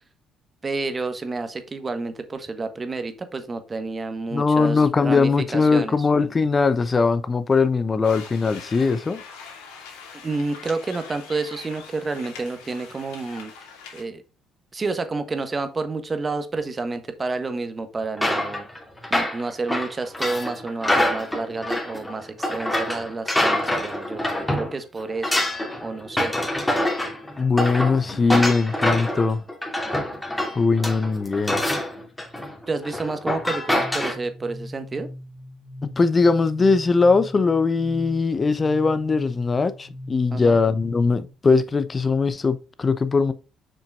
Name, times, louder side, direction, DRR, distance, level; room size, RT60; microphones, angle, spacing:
voice 1, 0.6-6.1 10.2-13.5 13.9-14.2 14.7-18.7 19.1-24.2 24.5-25.4 25.8-26.3 32.7-35.1 40.3-40.6, right 3 dB, 30° right, 1.4 m, -29 dB
voice 2, 4.3-9.2 27.4-29.4 30.6-31.6 35.8-43.3, left 4 dB, 35° left, 0.9 m, -20 dB
sound 1, 8.0-14.0, left 6 dB, 85° left, 2.5 m, -43 dB
sound 2, 18.2-24.7 25.0-34.1, left 1 dB, 10° left, 2.6 m, -25 dB
sound 3, 33.8-41.3, left 1 dB, 65° right, 2.8 m, -40 dB
7.4 x 5.9 x 2.5 m
hypercardioid pair, 60°, 0 cm